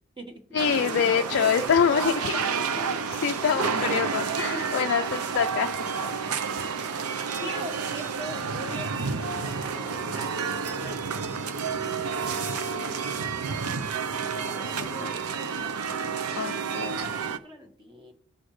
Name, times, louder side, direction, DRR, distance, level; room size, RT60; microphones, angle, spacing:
voice 1, 0.5-2.4 3.2-5.0 5.3-5.7 14.3-15.1 16.4-16.9, left 7 dB, 55° left, 5 dB, 0.4 m, -25 dB
sound 1, 0.6-17.4, right 5 dB, 80° right, 0.7 m, -30 dB
voice 2, 1.1-2.5 2.8-3.6 4.4-5.1 5.9-6.7 7.4-11.0 13.6-13.8 14.2-15.7 16.1-18.1, equal, 20° right, 3 dB, 1.5 m, -42 dB
18.5 x 6.3 x 3.2 m, 0.62 s
head